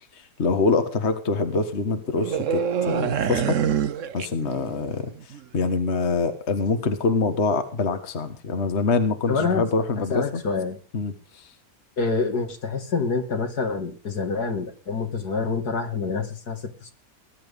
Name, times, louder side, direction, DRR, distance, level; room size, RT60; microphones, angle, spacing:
voice 1, 0.1-3.6 4.1-10.4 10.9-11.5, left 4 dB, 40° left, 8 dB, 1.8 m, -25 dB
sound 1, 2.2-4.9 5.1-5.4, right 8 dB, 55° right, 1.2 m, -26 dB
voice 2, 9.3-9.6 10.1-10.8 12.0-16.9, left 4 dB, 70° left, 6 dB, 2.8 m, -26 dB
20.0 x 10.5 x 5.3 m, 0.37 s
omnidirectional pair, 1.8 m